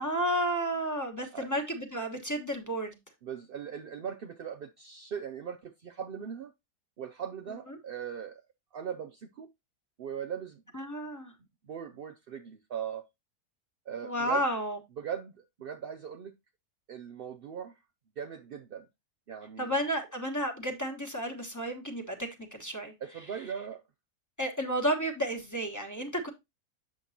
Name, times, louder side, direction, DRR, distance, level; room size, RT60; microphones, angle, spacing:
voice 1, 0.0-3.0 7.7-7.8 10.7-11.3 14.0-14.8 19.6-22.9 24.4-26.3, equal, 15° left, 1.2 m, -32 dB
voice 2, 3.2-6.5 7.0-8.4 8.7-9.5 10.0-10.6 11.6-13.0 13.9-14.4 15.0-16.3 16.9-17.8 18.2-18.9 19.3-19.7 23.0-23.8, right 8 dB, 75° right, 0.5 m, -39 dB
7.6 x 6.4 x 2.7 m
omnidirectional pair, 1.6 m